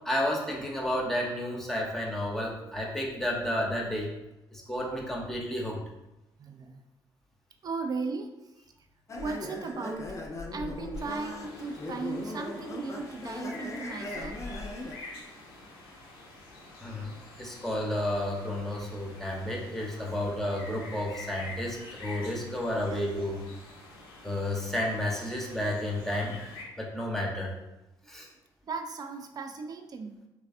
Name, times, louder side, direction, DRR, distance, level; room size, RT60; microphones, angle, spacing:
voice 1, 0.0-4.1 4.5-5.8 16.8-23.4 24.2-26.4 26.8-27.5 28.1-28.3, left 1 dB, ahead, -3 dB, 0.8 m, -31 dB
voice 2, 6.4-6.8 7.6-8.3 9.2-14.4 20.0-20.1 22.9-23.2 23.5-23.6 28.7-30.3, right 4 dB, 30° right, 5 dB, 0.4 m, -37 dB
sound 1, 9.1-14.9, left 2 dB, 25° left, 0.5 m, -39 dB
sound 2, 10.9-26.6, left 2 dB, 75° left, 0.6 m, -47 dB
3.3 x 3.2 x 2.5 m, 0.97 s
figure-of-eight pair, 45°, 12 cm